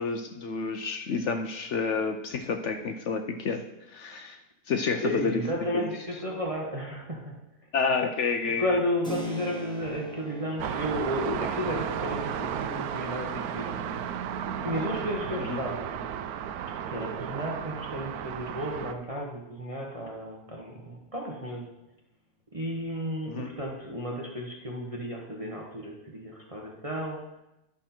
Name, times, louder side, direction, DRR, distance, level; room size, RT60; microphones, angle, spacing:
voice 1, 0.0-3.6 3.9-4.4 4.7-5.4 5.7-5.9 7.7-8.8 15.4-15.6 23.3-23.5, left 5 dB, 60° left, 6 dB, 0.8 m, -29 dB
voice 2, 5.0-7.4 8.6-14.3 14.6-16.0 16.7-21.7 22.5-27.4, equal, 25° right, -1 dB, 1.0 m, -33 dB
Keyboard (musical), 9.0-17.6, left 1 dB, 5° left, 0.7 m, -43 dB
sound 1, 10.6-18.9, right 8 dB, 75° right, 1.0 m, -34 dB
11.5 x 6.0 x 4.3 m, 0.91 s
omnidirectional pair, 1.7 m